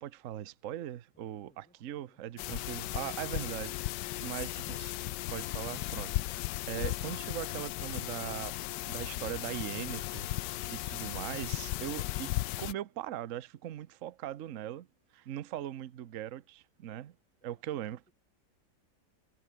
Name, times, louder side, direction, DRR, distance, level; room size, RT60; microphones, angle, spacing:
voice 1, 0.0-3.7 4.2-4.9 5.3-14.9 15.1-17.2 17.4-18.1, right 12 dB, 55° right, 1.0 m, -40 dB
voice 2, 1.1-2.2 17.4-18.1, equal, 5° left, 6.7 m, -69 dB
sound 1, 2.4-12.7, left 17 dB, 80° left, 1.2 m, -36 dB
omnidirectional pair, 1.8 m